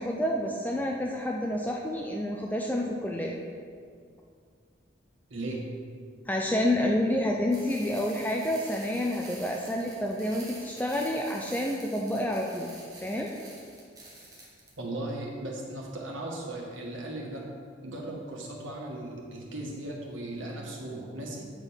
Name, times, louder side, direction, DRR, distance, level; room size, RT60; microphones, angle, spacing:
voice 1, 0.0-3.4 6.3-12.7 13.0-13.3, left 1 dB, 10° left, -1 dB, 0.5 m, -29 dB
voice 2, 5.3-5.6 14.8-17.4 17.8-21.4, right 1 dB, 90° right, -2 dB, 1.6 m, -37 dB
sound 1, 7.5-14.7, right 2 dB, 20° right, 1.5 m, -48 dB
8.3 x 5.3 x 5.7 m, 2.1 s
head